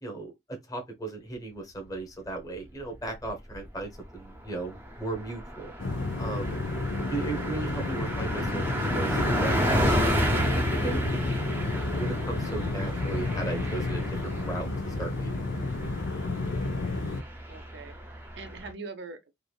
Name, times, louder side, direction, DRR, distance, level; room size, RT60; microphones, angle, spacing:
voice 1, 0.0-5.7 6.2-6.6 7.1-9.9 10.5-11.2 11.9-15.6, right 2 dB, 20° left, 1.0 m, -36 dB
Car passing by, 3.0-3.7 4.0-4.2 4.4-18.7, equal, 10° right, 0.6 m, -32 dB
sound 1, 5.8-17.2, left 2 dB, 80° left, 0.6 m, -31 dB
voice 2, 17.5-19.3, right 4 dB, 65° right, 0.6 m, -43 dB
3.2 x 2.5 x 2.3 m
head